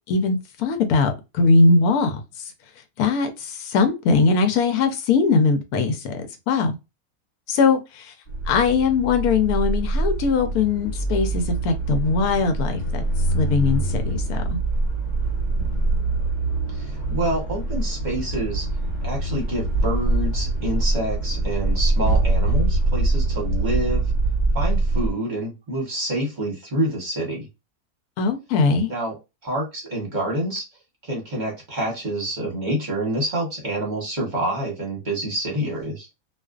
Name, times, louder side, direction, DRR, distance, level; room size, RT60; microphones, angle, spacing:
voice 1, 0.1-2.2 3.0-6.8 7.5-8.1 8.5-13.0 13.3-14.6 28.2-28.9, left 4 dB, 80° left, 1.1 m, -21 dB
sound 1, 8.3-25.1, right 2 dB, 55° left, 1.1 m, -24 dB
voice 2, 16.7-18.7 19.0-24.0 24.5-27.5 28.9-29.1 29.4-30.6 31.0-36.1, right 1 dB, 35° right, 0.9 m, -27 dB
2.4 x 2.4 x 2.3 m
omnidirectional pair, 1.6 m